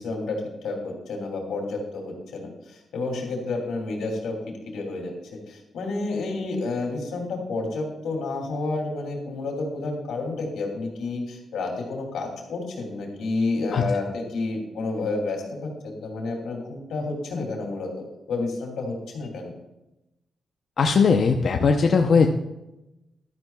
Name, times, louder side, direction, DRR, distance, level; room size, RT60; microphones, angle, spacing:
voice 1, 0.0-4.4 4.7-5.1 5.5-17.9 18.3-19.5, left 3 dB, 90° left, 1 dB, 2.8 m, -30 dB
voice 2, 20.8-22.3, left 5 dB, 60° left, 3 dB, 0.7 m, -19 dB
15.0 x 12.0 x 2.4 m, 0.95 s
cardioid pair, 90°, 0 cm